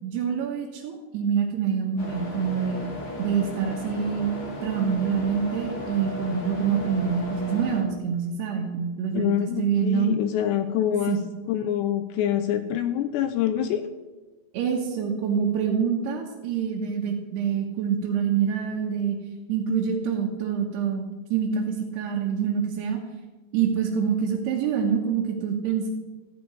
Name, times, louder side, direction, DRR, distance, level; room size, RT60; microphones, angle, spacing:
voice 1, 0.0-2.8 3.2-4.3 4.6-10.1 11.1-11.2 14.5-19.2 19.5-23.0 23.5-25.9, right 7 dB, 70° right, -2 dB, 2.9 m, -26 dB
sound 1, 2.0-7.8, left 1 dB, 50° left, 1.7 m, -35 dB
voice 2, 9.1-11.2 11.5-13.9, left 10 dB, 85° left, 9 dB, 2.5 m, -25 dB
14.5 x 6.1 x 9.6 m, 1.2 s
omnidirectional pair, 5.6 m